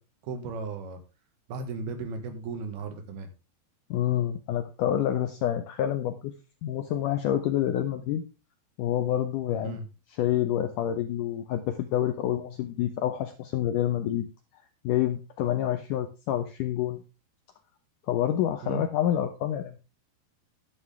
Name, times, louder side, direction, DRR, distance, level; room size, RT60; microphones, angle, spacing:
voice 1, 0.2-1.0 1.5-3.3 9.6-9.9 18.6-18.9, right 4 dB, 75° right, 7 dB, 3.6 m, -35 dB
voice 2, 3.9-6.3 6.6-8.2 8.8-9.8 10.1-14.3 14.8-17.0 18.1-19.8, left 11 dB, 80° left, 8 dB, 1.9 m, -28 dB
11.0 x 9.5 x 3.5 m, 0.29 s
omnidirectional pair, 4.6 m